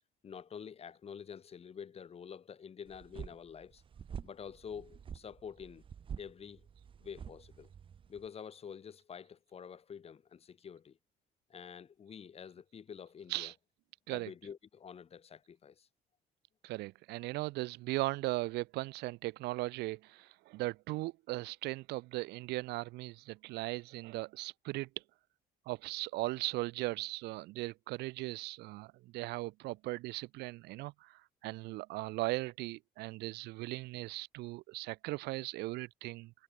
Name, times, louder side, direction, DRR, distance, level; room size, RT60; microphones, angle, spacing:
voice 1, 0.2-3.8 4.2-5.8 6.2-6.7 7.0-7.7 8.1-11.0 11.5-13.5 14.1-15.9, left 7 dB, 35° left, 1.4 m, -48 dB
sound 1, 2.9-8.3, right 7 dB, 30° right, 0.6 m, -48 dB
voice 2, 16.6-24.9 25.7-36.3, right 20 dB, 80° right, 0.5 m, -38 dB
cardioid pair, 110°, 17 cm